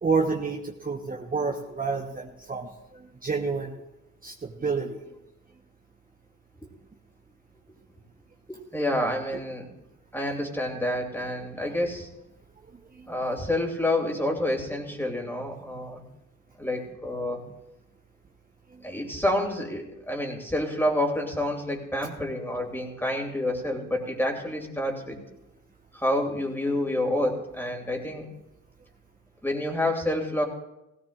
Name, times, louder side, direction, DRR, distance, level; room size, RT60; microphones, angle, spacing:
voice 1, 0.0-2.7 3.2-3.7 4.2-5.0, right 4 dB, 30° right, 1 dB, 1.1 m, -28 dB
voice 2, 8.5-9.7 10.1-12.1 13.1-16.0 16.6-17.4 18.8-25.2 25.9-28.3 29.4-30.4, left 1 dB, 5° left, 1 dB, 2.8 m, -28 dB
16.5 x 16.5 x 2.5 m, 0.94 s
cardioid pair, 65°, 30 cm